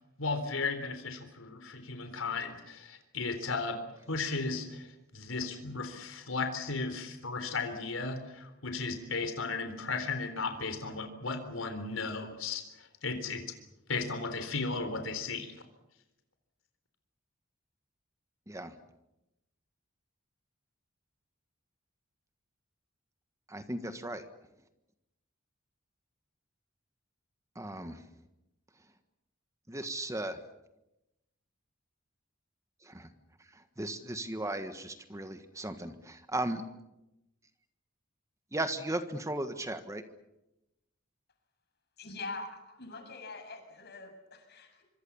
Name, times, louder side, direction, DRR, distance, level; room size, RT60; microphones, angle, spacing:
voice 1, 0.2-3.8 4.1-4.9 5.1-12.6 13.0-13.4 13.9-15.5, left 4 dB, 80° left, 8 dB, 3.7 m, -35 dB
voice 2, 23.5-24.2 27.5-28.0 29.7-30.4 32.8-33.1 33.5-36.6 38.5-40.0, right 1 dB, 15° right, 9 dB, 1.5 m, -36 dB
voice 3, 42.0-44.8, left 3 dB, 55° left, 5 dB, 7.2 m, -43 dB
25.5 x 25.5 x 7.1 m, 0.92 s
head